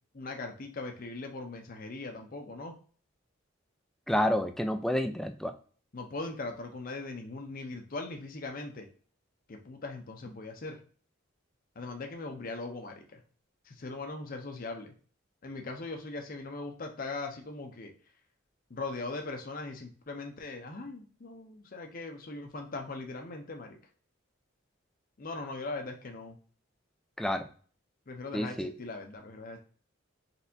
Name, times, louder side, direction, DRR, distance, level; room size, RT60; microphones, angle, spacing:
voice 1, 0.1-2.7 5.9-8.9 9.5-10.8 11.8-13.2 13.6-14.9 15.4-17.9 18.7-23.8 25.2-26.4 28.1-29.6, left 3 dB, 45° left, 3 dB, 0.6 m, -40 dB
voice 2, 4.1-5.5 27.2-27.5 28.3-28.7, equal, ahead, 7 dB, 0.3 m, -29 dB
4.3 x 3.3 x 2.6 m, 0.42 s
head